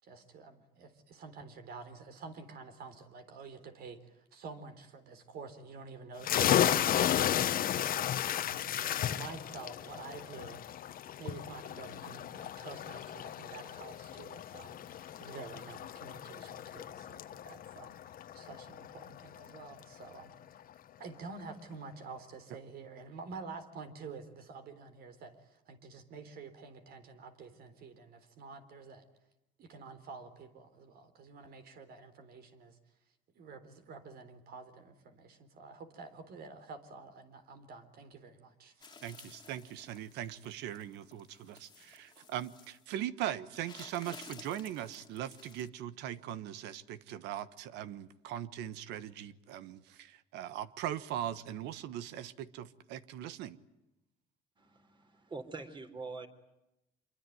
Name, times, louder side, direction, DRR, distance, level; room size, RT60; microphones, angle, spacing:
voice 1, 0.0-10.6 11.2-20.6 21.0-29.1 29.6-32.8 33.4-39.0, right 4 dB, 65° right, 9 dB, 3.9 m, -49 dB
sound 1, 6.2-19.6, left 11 dB, 60° left, 1.2 m, -34 dB
sound 2, 38.8-42.9 43.5-45.7, left 5 dB, 25° left, 2.2 m, -55 dB
voice 2, 39.0-53.6, right 11 dB, 90° right, 15 dB, 1.3 m, -40 dB
voice 3, 54.6-56.3, right 3 dB, 30° right, 7 dB, 4.0 m, -44 dB
26.0 x 23.0 x 9.4 m, 0.91 s
cardioid pair, 110°, 17 cm